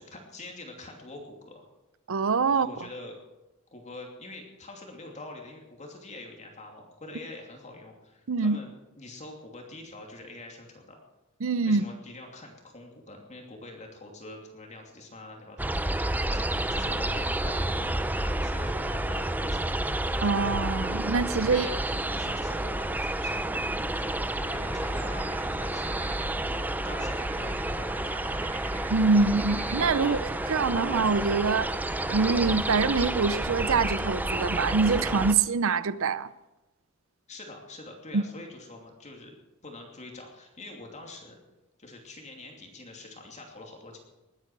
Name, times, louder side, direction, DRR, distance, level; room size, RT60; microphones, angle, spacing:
voice 1, 0.0-1.7 2.5-3.1 3.7-11.0 11.6-19.7 21.5-21.8 22.1-26.0 26.5-28.5 29.9-30.3 37.3-39.3 39.6-41.4 41.8-44.0, left 2 dB, 35° left, 2.8 m, -45 dB
voice 2, 2.1-2.7 8.3-8.6 11.4-11.8 20.2-21.7 28.9-30.2 30.5-31.7 32.1-36.3 38.1-38.2, right 4 dB, 65° right, 0.6 m, -24 dB
sound 1, 15.6-35.3, right 1 dB, 10° right, 0.5 m, -30 dB
sound 2, 24.4-33.1, right 5 dB, 35° right, 1.4 m, -48 dB
20.5 x 9.1 x 6.1 m
head